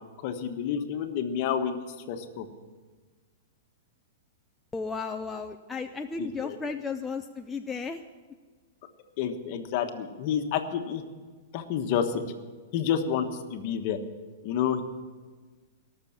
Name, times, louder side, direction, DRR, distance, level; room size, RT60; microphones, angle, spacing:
voice 1, 0.2-1.8 2.1-2.4 6.2-6.6 9.2-11.0 11.5-12.2 12.7-14.0 14.4-14.8, left 8 dB, 45° left, 6 dB, 1.3 m, -29 dB
voice 2, 4.7-8.0, left 4 dB, 10° left, 4 dB, 0.5 m, -34 dB
18.0 x 6.9 x 8.7 m, 1.4 s
hypercardioid pair, 150°, 0 cm